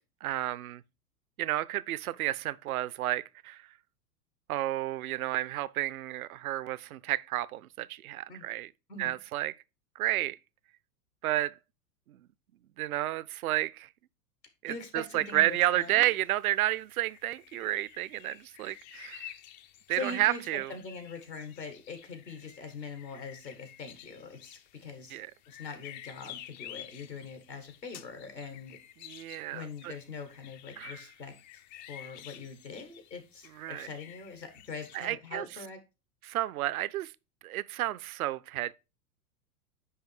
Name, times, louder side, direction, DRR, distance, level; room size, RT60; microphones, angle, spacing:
voice 1, 0.2-0.8 1.4-3.7 4.5-8.7 9.0-9.5 10.0-10.4 11.2-11.5 12.1-12.2 12.8-13.9 14.6-19.3 19.9-20.7 25.1-25.3 29.0-29.9 30.8-31.0 33.6-33.9 34.9-35.4 36.2-37.1 37.4-38.7, right 15 dB, 60° right, 0.6 m, -31 dB
voice 2, 14.7-16.1 19.9-25.2 25.5-28.8 29.5-31.3 31.7-35.8, left 4 dB, 90° left, 2.0 m, -42 dB
sound 1, 15.2-35.1, left 12 dB, 30° left, 0.4 m, -51 dB
9.4 x 3.2 x 4.8 m
figure-of-eight pair, 95°, 49 cm